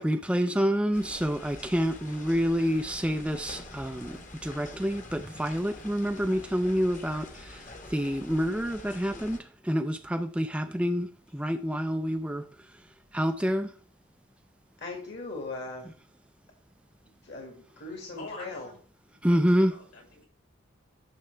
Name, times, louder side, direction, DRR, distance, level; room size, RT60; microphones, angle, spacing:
voice 1, 0.0-13.8 19.2-19.8, equal, 5° right, 0.4 m, -28 dB
sound 1, 0.9-9.4, left 2 dB, 35° left, 1.3 m, -46 dB
voice 2, 14.8-15.9 17.2-18.7, left 3 dB, 50° left, 2.1 m, -39 dB
voice 3, 18.1-18.8 19.2-20.3, left 2 dB, 70° left, 4.6 m, -45 dB
12.0 x 6.7 x 3.4 m
head